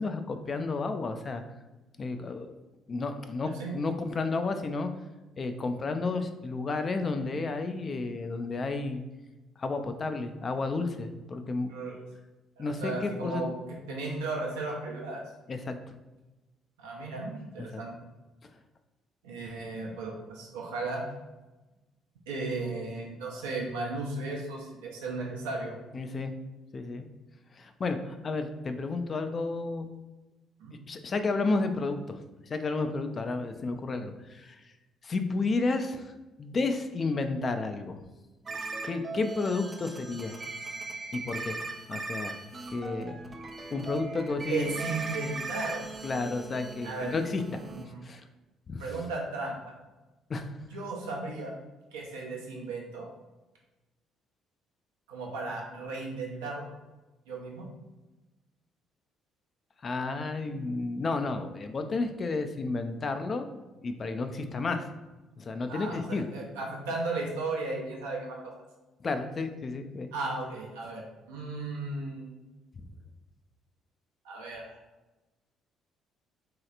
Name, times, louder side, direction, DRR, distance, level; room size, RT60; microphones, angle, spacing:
voice 1, 0.0-1.4 2.0-2.5 2.9-4.9 5.4-9.0 9.6-11.7 12.6-13.5 15.5-15.8 17.7-17.8 25.9-26.3 26.7-27.1 27.5-29.9 30.9-32.2 32.5-34.6 35.0-36.1 36.4-38.0 38.8-40.4 41.1-41.6 41.9-42.3 42.7-43.2 43.7-44.7 46.0-48.2 48.7-48.8 50.3-50.6 59.8-63.5 63.8-64.9 65.4-66.2 69.0-70.1, left 3 dB, 40° left, 7 dB, 0.3 m, -32 dB
voice 2, 12.6-15.2 16.8-17.9 19.2-21.0 22.3-25.8 30.6-30.8 44.5-45.9 46.8-47.1 47.6-48.0 48.8-49.7 50.6-51.6 51.9-53.1 55.1-56.7 57.3-57.7 65.7-68.4 70.1-71.0 71.3-72.3 74.2-74.8, right 3 dB, 80° right, -2 dB, 0.6 m, -35 dB
sound 1, 38.5-47.9, right 3 dB, 35° right, 0.4 m, -39 dB
3.1 x 2.8 x 2.4 m, 1.1 s
hypercardioid pair, 50°, 0 cm